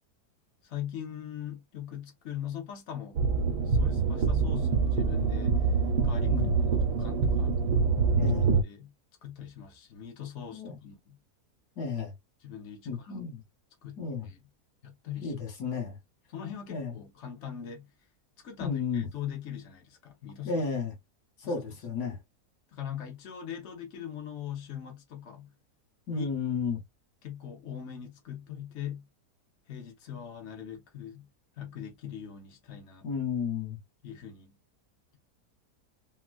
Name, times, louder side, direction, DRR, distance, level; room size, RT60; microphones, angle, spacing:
voice 1, 0.6-3.2 3.7-5.7 6.0-6.3 6.6-7.6 8.6-8.9 9.2-11.2 12.4-13.2 13.8-14.4 14.8-15.4 16.3-17.9 18.4-20.6 21.4-21.6 22.7-25.5 26.1-26.3 27.2-29.1 29.7-31.3 31.6-33.1 34.0-34.6, left 9 dB, 55° left, 1.1 m, -41 dB
sound 1, 3.2-8.6, right 4 dB, 85° right, 1.3 m, -25 dB
voice 2, 8.2-8.5 10.5-10.8 11.8-12.1 12.8-13.4 14.0-14.3 15.2-16.0 16.7-16.9 18.6-19.1 20.4-20.9 21.4-22.2 26.1-26.8 33.0-33.8, left 5 dB, 80° left, 1.8 m, -32 dB
3.6 x 2.3 x 2.4 m
omnidirectional pair, 1.7 m